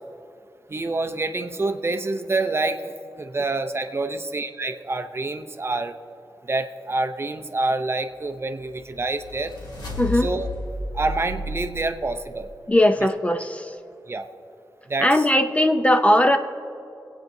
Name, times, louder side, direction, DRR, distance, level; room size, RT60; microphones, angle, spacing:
voice 1, 0.7-5.9 6.5-9.5 10.1-10.5 10.9-12.5 14.1-14.2 14.9-15.3, right 2 dB, 35° right, 7 dB, 0.6 m, -27 dB
sound 1, 8.3-12.6, left 1 dB, 85° left, 2.4 m, -33 dB
voice 2, 12.7-13.7 15.0-16.4, left 1 dB, 20° left, 7 dB, 0.5 m, -19 dB
24.0 x 8.8 x 2.7 m, 2.7 s
wide cardioid pair, 100°, 7 cm